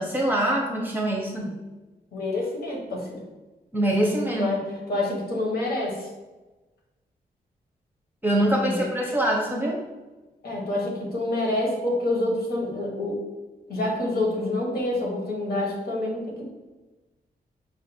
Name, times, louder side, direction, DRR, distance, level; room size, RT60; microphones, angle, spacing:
voice 1, 0.0-1.5 3.7-4.5 8.2-9.8, right 1 dB, 10° right, -1 dB, 0.7 m, -24 dB
voice 2, 2.1-3.2 4.4-6.1 8.7-8.8 10.4-13.2 13.7-16.5, left 2 dB, 80° left, -2 dB, 1.3 m, -27 dB
5.1 x 2.5 x 4.3 m, 1.2 s
wide cardioid pair, 160°, 16 cm